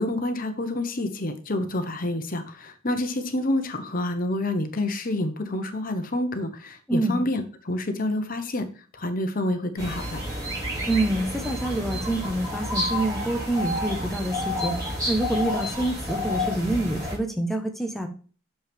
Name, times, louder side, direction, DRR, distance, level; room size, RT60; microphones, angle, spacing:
voice 1, 0.0-10.2, left 1 dB, 40° left, 7 dB, 1.1 m, -28 dB
voice 2, 6.9-7.2 10.9-18.1, right 1 dB, ahead, 4 dB, 1.1 m, -27 dB
sound 1, 9.8-17.2, left 1 dB, 15° right, 4.8 m, -30 dB
8.7 x 6.7 x 3.6 m, 0.38 s
head